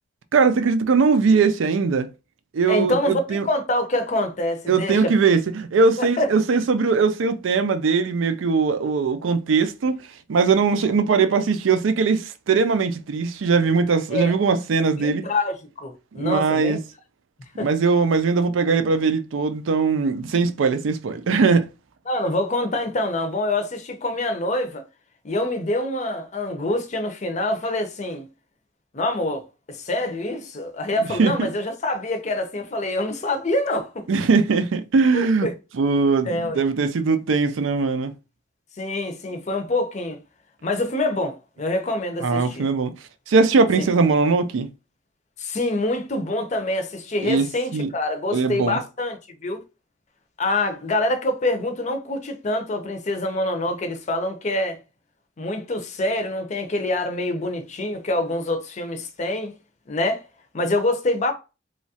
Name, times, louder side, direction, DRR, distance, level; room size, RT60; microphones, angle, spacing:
voice 1, 0.3-2.1 2.5-3.5 4.7-15.3 16.1-16.8 17.6-21.7 31.2-31.5 34.1-35.5 35.7-38.1 42.2-43.0 43.3-44.7 47.2-47.9 48.3-48.8, right 4 dB, 90° right, 0.4 m, -20 dB
voice 2, 2.7-5.1 6.0-6.3 14.1-14.3 15.0-16.8 17.6-17.7 22.1-24.8 25.2-28.3 28.9-34.1 35.1-35.5 36.2-36.6 38.8-40.2 40.6-42.7 43.8-43.9 45.4-49.6 50.4-54.8 55.4-59.5 59.9-60.2 60.5-61.3, left 1 dB, 40° left, 0.5 m, -25 dB
3.1 x 2.3 x 2.7 m
head